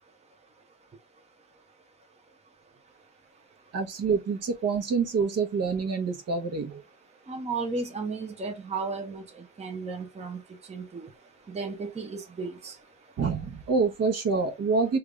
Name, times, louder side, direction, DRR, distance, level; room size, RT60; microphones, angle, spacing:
voice 1, 3.7-6.8 13.2-15.0, right 4 dB, 55° right, 1.0 m, -26 dB
voice 2, 7.3-9.2 9.6-10.4 10.7-11.1 11.5-12.7, right 4 dB, 20° right, 0.7 m, -34 dB
3.4 x 2.5 x 3.1 m
cardioid pair, 90°, 30 cm